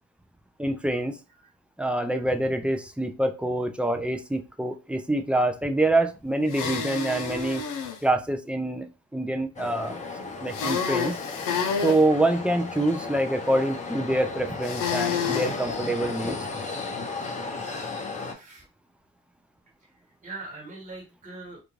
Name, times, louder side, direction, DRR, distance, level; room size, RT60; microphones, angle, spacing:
voice 1, 0.6-1.2 1.8-7.6 8.0-10.0 10.4-11.2 11.8-16.4, right 1 dB, 5° right, 6 dB, 0.3 m, -26 dB
sound 1, 6.5-8.0 10.5-12.0 14.6-15.6, left 6 dB, 90° left, 0.6 m, -29 dB
sound 2, 9.6-18.3, left 3 dB, 25° left, 0.7 m, -35 dB
voice 2, 17.9-18.7 19.8-21.6, right 3 dB, 25° right, -2 dB, 1.1 m, -44 dB
2.5 x 2.2 x 3.0 m, 0.29 s
cardioid pair, 90°, 30 cm